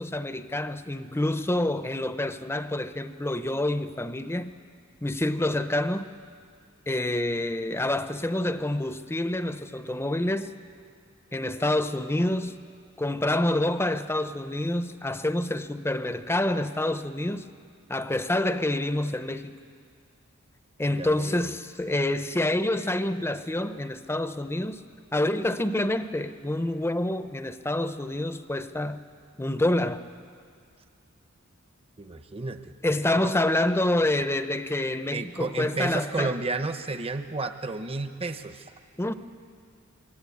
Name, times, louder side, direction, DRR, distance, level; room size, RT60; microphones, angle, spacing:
voice 1, 0.0-4.5 5.0-6.1 6.9-10.5 11.3-12.6 13.0-17.5 17.9-19.6 20.8-24.8 25.1-29.1 29.4-30.0 32.8-36.4 39.0-39.1, left 1 dB, 10° left, 0.7 m, -27 dB
voice 2, 20.9-21.5 32.0-32.8 33.2-33.3 35.1-38.7, right 3 dB, 30° right, 0.9 m, -32 dB
25.5 x 22.5 x 8.5 m
head